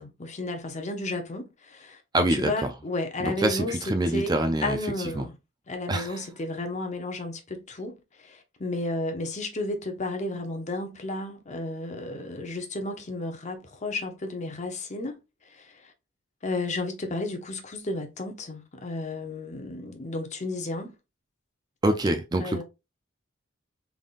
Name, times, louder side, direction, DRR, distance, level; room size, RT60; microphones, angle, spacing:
voice 1, 0.0-5.3 5.7-8.0 8.2-15.2 15.5-15.9 16.4-20.9 22.4-22.6, left 2 dB, 35° left, 0.8 m, -33 dB
voice 2, 2.1-2.5 3.2-4.8 5.2-5.3 5.9-6.2 21.8-22.6, right 1 dB, 20° right, 0.4 m, -25 dB
3.8 x 3.6 x 2.5 m
head